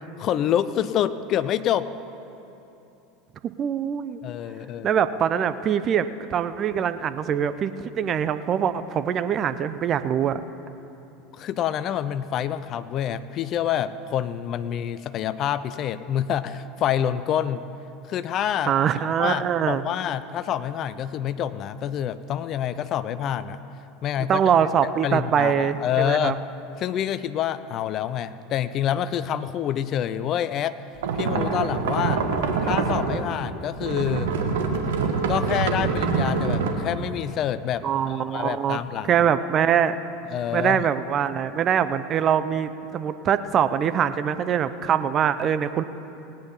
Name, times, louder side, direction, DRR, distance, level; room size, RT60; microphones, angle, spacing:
voice 1, 0.2-1.9 4.2-4.9 11.3-17.6 18.1-18.7 19.2-23.6 24.0-24.4 24.8-26.4 26.8-30.8 31.2-32.2 32.6-34.3 35.3-39.2 40.3-40.9, left 10 dB, 45° left, 13 dB, 0.5 m, -27 dB
voice 2, 3.4-4.2 4.8-10.4 18.7-19.8 24.3-26.3 37.8-38.8 39.1-40.0 40.5-45.8, right 8 dB, 35° right, 12 dB, 0.6 m, -23 dB
sound 1, 31.0-33.4 33.8-36.7, right 5 dB, 65° right, 1.3 m, -25 dB
18.5 x 8.9 x 5.6 m, 2.9 s
figure-of-eight pair, 80°, 0 cm